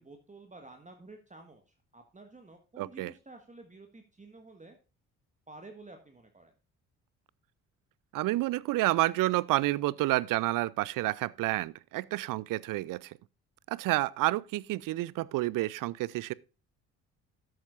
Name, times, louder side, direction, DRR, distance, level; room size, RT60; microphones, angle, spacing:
voice 1, 0.0-4.8 5.5-6.5, right 2 dB, 15° right, 1.6 m, -51 dB
voice 2, 2.8-3.1 8.1-13.2 13.7-16.3, right 17 dB, 50° right, 0.5 m, -29 dB
12.5 x 8.6 x 2.5 m
figure-of-eight pair, 45°, 43 cm